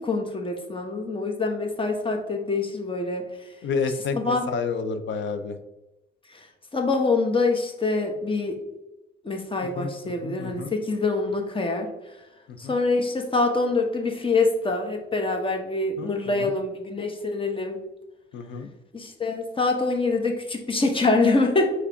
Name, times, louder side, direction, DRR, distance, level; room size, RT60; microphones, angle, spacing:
voice 1, 0.0-3.2 4.1-4.5 6.3-6.5 6.7-8.6 9.2-11.9 12.6-17.8 18.9-21.7, left 3 dB, 25° left, 4 dB, 1.3 m, -25 dB
voice 2, 3.6-5.6 9.8-10.7 12.5-12.8 16.0-16.5 18.3-18.7, left 5 dB, 70° left, 9 dB, 0.8 m, -30 dB
5.0 x 4.1 x 4.9 m, 1.0 s
cardioid pair, 90°, 20 cm